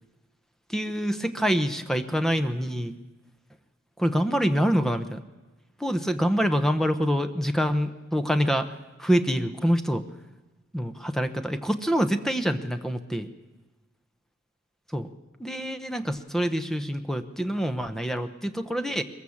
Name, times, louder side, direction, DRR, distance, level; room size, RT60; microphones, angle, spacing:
voice 1, 0.7-3.0 4.0-5.2 5.8-10.0 10.7-13.3 14.9-15.1 15.4-19.0, equal, ahead, 9 dB, 0.8 m, -26 dB
22.0 x 21.5 x 7.2 m, 1.2 s
head